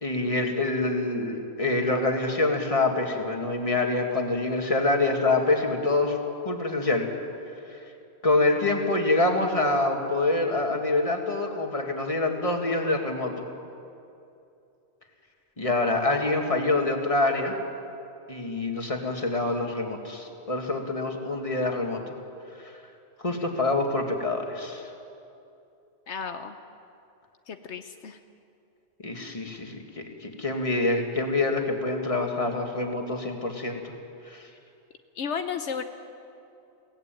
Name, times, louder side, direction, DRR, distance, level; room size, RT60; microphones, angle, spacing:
voice 1, 0.0-6.2 6.4-7.1 7.7-7.8 8.2-13.3 15.6-17.5 18.3-22.0 23.2-24.9 29.0-33.9 34.3-34.5, left 2 dB, 30° left, 3 dB, 2.2 m, -26 dB
voice 2, 26.1-26.6 27.5-28.2 35.1-35.8, left 6 dB, 80° left, 8 dB, 1.2 m, -33 dB
22.5 x 17.0 x 9.2 m, 2.7 s
omnidirectional pair, 1.2 m